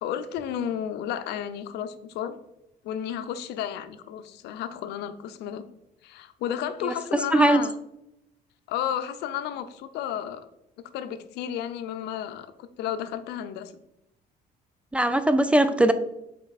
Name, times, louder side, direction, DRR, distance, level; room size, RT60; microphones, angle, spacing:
voice 1, 0.0-2.4 2.8-5.6 6.0-7.7 8.7-10.4 10.8-13.7, left 9 dB, 85° left, 10 dB, 0.6 m, -32 dB
voice 2, 7.3-7.6 14.9-15.9, right 1 dB, 5° right, 11 dB, 0.4 m, -20 dB
7.3 x 4.3 x 4.1 m, 0.84 s
cardioid pair, 110°, 17 cm